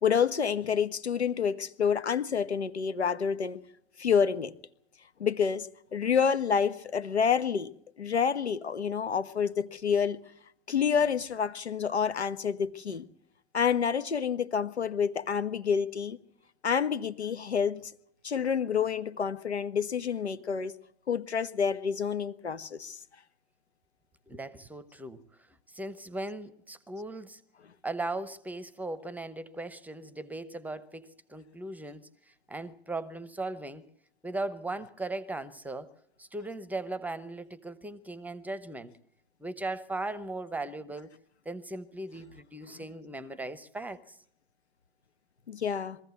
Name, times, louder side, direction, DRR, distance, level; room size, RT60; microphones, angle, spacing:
voice 1, 0.0-3.6 4.0-4.5 5.2-7.7 8.0-10.2 10.7-13.0 13.5-16.2 16.6-17.8 18.2-20.7 21.1-23.0 42.7-42.8 45.5-46.0, left 7 dB, 85° left, 1.3 m, -28 dB
voice 2, 24.3-27.4 27.8-32.1 32.5-33.8 34.2-35.9 36.2-38.9 39.4-41.1 41.4-44.2, right 2 dB, 5° right, 0.8 m, -38 dB
22.5 x 15.0 x 8.2 m
hypercardioid pair, 115°, 32 cm